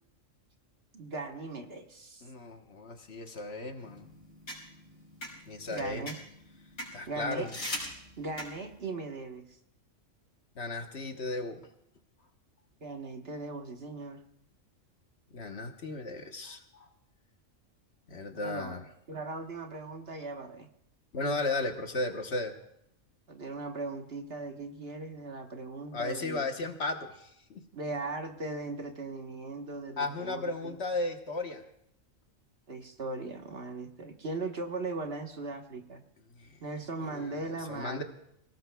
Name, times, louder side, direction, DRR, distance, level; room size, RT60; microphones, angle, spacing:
voice 1, 0.9-2.3 5.7-6.2 7.1-7.5 8.2-9.4 12.8-14.2 18.4-18.8 19.1-20.7 23.3-26.5 27.7-30.8 32.7-36.0 36.6-38.0, right 3 dB, 50° right, 4 dB, 1.4 m, -38 dB
voice 2, 2.2-4.1 5.4-6.0 6.9-7.5 10.6-11.6 15.3-16.9 18.1-18.8 21.1-22.5 25.9-27.6 30.0-31.6 36.4-36.6 37.0-38.0, left 2 dB, 55° left, 5 dB, 1.4 m, -35 dB
sound 1, 3.8-8.8, left 1 dB, 70° left, 5.5 m, -42 dB
27.5 x 18.0 x 2.3 m, 0.76 s
omnidirectional pair, 1.4 m